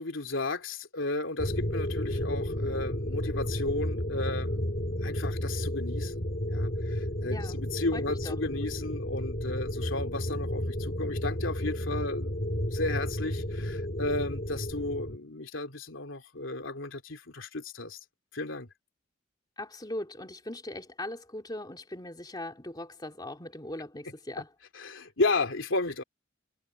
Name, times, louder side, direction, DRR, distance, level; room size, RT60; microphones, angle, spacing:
voice 1, 0.0-4.6 5.0-18.0 18.3-18.7 24.7-26.0, left 2 dB, 80° left, 2.9 m, -34 dB
sound 1, 1.4-15.2, left 1 dB, 50° left, 2.1 m, -32 dB
voice 2, 7.3-8.4 19.6-24.5, left 1 dB, 20° left, 2.7 m, -40 dB
head